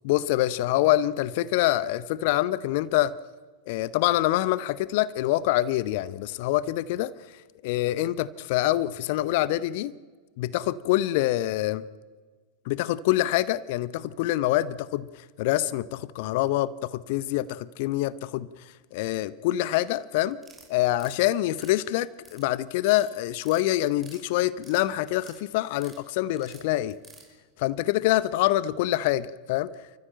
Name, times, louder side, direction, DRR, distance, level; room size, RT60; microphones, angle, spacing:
voice 1, 0.0-3.1 3.7-7.1 7.6-9.9 10.4-11.8 12.7-18.5 18.9-20.4 20.7-27.0 27.6-29.7, left 15 dB, 50° left, 19 dB, 0.7 m, -25 dB
sound 1, 20.3-21.2 21.5-22.4 22.7-23.0 23.3-24.2 24.5-25.4 25.7-26.0 26.4-27.3, right 3 dB, 5° right, 5.6 m, -50 dB
29.0 x 14.5 x 8.8 m, 1.4 s
figure-of-eight pair, 90°, 0 cm